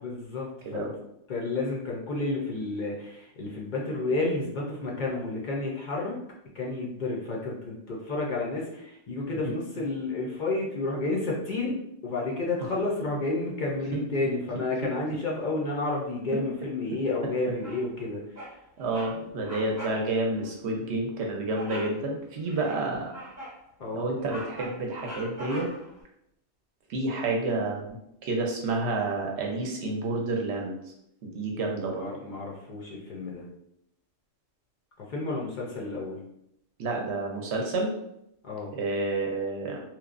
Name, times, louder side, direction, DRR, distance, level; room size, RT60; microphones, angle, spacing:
voice 1, 0.0-0.9 1.3-6.2 6.5-11.8 12.0-18.2 23.8-24.0 32.0-33.4 35.0-36.2 38.4-38.7, left 2 dB, 60° left, -2 dB, 0.5 m, -31 dB
Bird vocalization bird call bird song, 17.6-18.0 18.3-18.6 18.9-19.1 19.4-20.0 20.3-20.5 21.5-22.0 22.5-23.6 24.0-25.9, equal, 15° right, 0.7 m, -42 dB
voice 2, 18.8-23.1 23.9-25.7 26.9-28.0 28.2-30.7 31.2-32.1 36.8-37.9 38.7-39.8, right 2 dB, 65° right, 0 dB, 0.8 m, -29 dB
3.0 x 2.0 x 2.4 m, 0.78 s
omnidirectional pair, 1.3 m